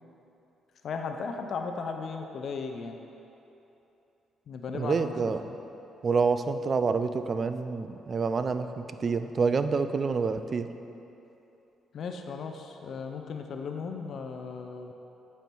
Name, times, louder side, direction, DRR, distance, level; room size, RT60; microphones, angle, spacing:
voice 1, 0.8-3.0 4.5-5.6 11.9-14.9, left 5 dB, 60° left, 4 dB, 0.5 m, -36 dB
voice 2, 4.7-5.4 6.0-10.7, right 4 dB, 40° right, 10 dB, 0.3 m, -27 dB
8.3 x 4.5 x 4.5 m, 3.0 s
cardioid pair, 90°, 0 cm